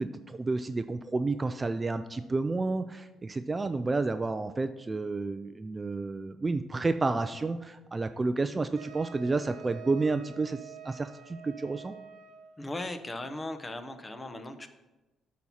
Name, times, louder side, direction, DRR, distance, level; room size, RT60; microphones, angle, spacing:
voice 1, 0.0-12.0, right 3 dB, 25° right, 10 dB, 0.4 m, -30 dB
Wind instrument woodwind instrument, 8.8-12.6, right 8 dB, 85° right, 0.8 m, -48 dB
voice 2, 12.6-14.7, left 2 dB, 20° left, 9 dB, 0.8 m, -38 dB
8.7 x 4.2 x 5.8 m, 1.1 s
cardioid pair, 90°, 0 cm